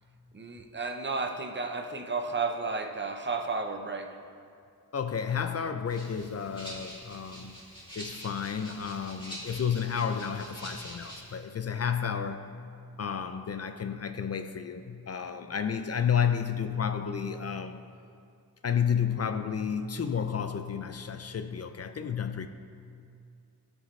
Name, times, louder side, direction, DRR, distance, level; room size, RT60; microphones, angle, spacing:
voice 1, 0.3-4.1, right 4 dB, 30° right, 4 dB, 0.7 m, -32 dB
voice 2, 4.9-7.6 8.0-12.5 13.0-17.8 18.6-22.5, left 7 dB, 40° left, 9 dB, 0.4 m, -31 dB
Rattle (instrument), 5.8-11.4, equal, 15° left, 2.7 m, -45 dB
18.5 x 6.3 x 3.2 m, 2.4 s
wide cardioid pair, 135°, 38 cm